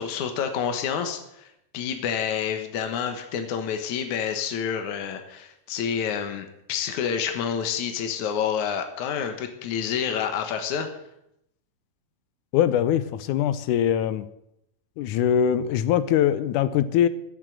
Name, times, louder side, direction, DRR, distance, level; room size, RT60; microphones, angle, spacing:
voice 1, 0.0-10.9, left 7 dB, 75° left, 6 dB, 2.7 m, -28 dB
voice 2, 12.5-14.3 15.0-17.1, left 10 dB, 90° left, 14 dB, 2.2 m, -22 dB
15.5 x 7.5 x 9.2 m, 0.79 s
omnidirectional pair, 3.5 m